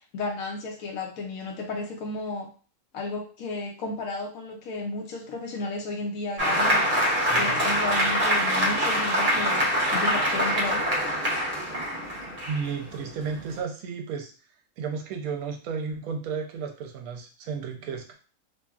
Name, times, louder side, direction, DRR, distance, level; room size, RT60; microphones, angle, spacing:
voice 1, 0.1-2.5 2.9-6.8 7.3-10.9, left 2 dB, 70° left, 0 dB, 0.9 m, -33 dB
Applause, 6.4-13.6, equal, 40° right, 0.5 m, -25 dB
voice 2, 12.5-14.3 14.8-18.1, right 5 dB, 70° right, 3 dB, 1.0 m, -33 dB
2.7 x 2.6 x 2.3 m, 0.37 s
omnidirectional pair, 1.7 m